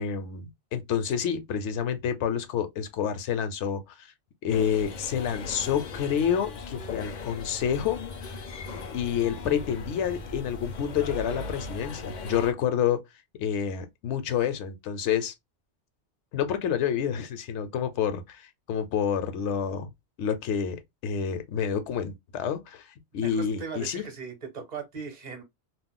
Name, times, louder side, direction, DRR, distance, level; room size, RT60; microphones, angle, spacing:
voice 1, 0.0-4.1 4.4-8.4 8.9-13.0 13.4-15.3 16.3-19.9 20.2-22.9 23.1-24.0, left 8 dB, 85° left, 0.9 m, -28 dB
sound 1, 4.5-12.5, left 3 dB, 60° left, 0.5 m, -38 dB
voice 2, 23.2-25.4, right 6 dB, 45° right, 0.8 m, -38 dB
2.4 x 2.1 x 3.6 m
omnidirectional pair, 1.2 m